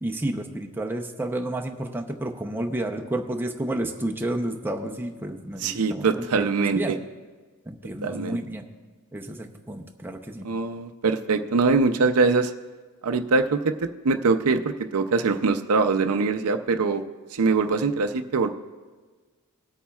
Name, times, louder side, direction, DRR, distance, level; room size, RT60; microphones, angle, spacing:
voice 1, 0.0-6.9 7.7-8.7 9.1-10.5, right 1 dB, 10° right, 1 dB, 0.6 m, -31 dB
voice 2, 5.6-7.0 8.0-8.4 10.4-12.5 13.0-17.0 17.3-18.5, right 4 dB, 75° right, 8 dB, 0.5 m, -23 dB
21.0 x 8.5 x 2.3 m, 1.4 s
head